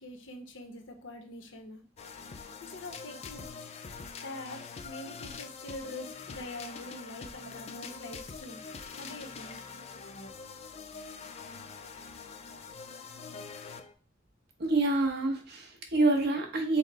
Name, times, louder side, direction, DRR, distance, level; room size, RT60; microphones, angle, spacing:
voice 1, 0.0-1.8 2.6-3.5 4.2-8.6 9.0-9.5, left 2 dB, 75° left, 4 dB, 0.9 m, -44 dB
sound 1, 2.0-13.9, left 5 dB, 35° left, 0.4 m, -44 dB
voice 2, 14.6-16.8, right 2 dB, 60° right, 3 dB, 0.9 m, -27 dB
5.7 x 2.1 x 4.0 m, 0.36 s
head